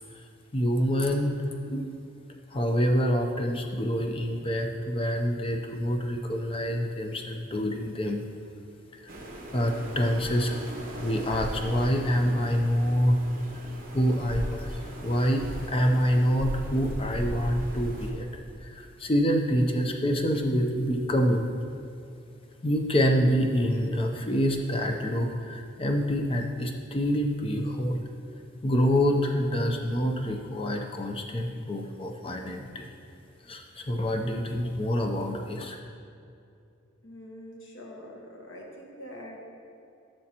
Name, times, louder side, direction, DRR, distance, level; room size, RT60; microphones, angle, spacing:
voice 1, 0.1-1.4 1.7-2.0 2.5-8.2 9.0-9.2 9.5-10.6 11.0-13.2 13.9-18.3 18.6-21.5 22.6-28.0 28.6-32.9 33.4-35.8, equal, 25° left, 3 dB, 0.6 m, -26 dB
sound 1, 9.1-18.1, right 1 dB, 45° right, 1.2 m, -38 dB
voice 2, 37.0-39.4, equal, 70° left, -1 dB, 1.3 m, -44 dB
12.5 x 6.4 x 2.9 m, 2.6 s
head